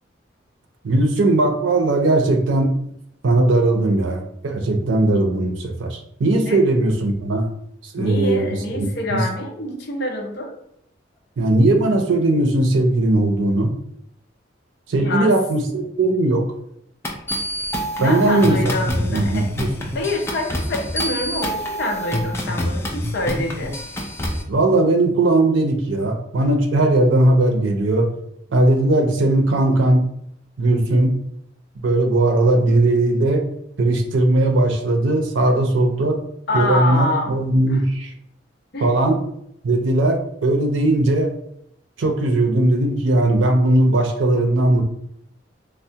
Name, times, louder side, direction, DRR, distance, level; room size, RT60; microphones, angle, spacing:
voice 1, 0.8-2.7 3.2-7.5 7.9-9.2 11.4-13.7 14.9-16.5 18.0-18.7 19.1-19.9 24.5-28.1 28.5-30.0 30.6-31.1 31.8-33.5 33.8-36.2 36.5-38.1 38.8-39.2 39.6-41.3 42.0-44.8, right 2 dB, 85° right, 4 dB, 0.5 m, -18 dB
voice 2, 8.0-10.6 14.9-15.4 18.0-19.5 19.9-23.8 36.5-37.4 37.7-37.8 38.7-38.9, left 1 dB, 60° left, 1 dB, 0.6 m, -26 dB
sound 1, 17.0-24.4, equal, 15° left, 0.4 m, -26 dB
3.2 x 2.0 x 2.7 m, 0.72 s
head